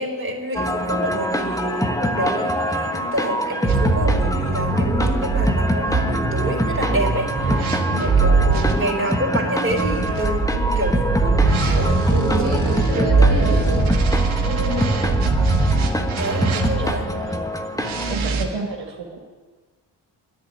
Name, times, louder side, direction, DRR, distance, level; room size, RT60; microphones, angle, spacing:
voice 1, 0.0-12.3 12.9-13.7 14.4-15.0 16.2-17.1, right 1 dB, 25° right, -1 dB, 4.1 m, -28 dB
sound 1, 0.5-18.2, equal, 5° left, 1.4 m, -25 dB
sound 2, 3.7-8.7 9.7-17.0 17.8-18.4, right 3 dB, 85° right, 1.7 m, -21 dB
voice 2, 12.1-14.0 16.4-17.4 18.1-19.2, right 4 dB, 65° right, -1 dB, 2.5 m, -29 dB
11.5 x 10.5 x 8.9 m, 1.4 s
cardioid pair, 60°, 47 cm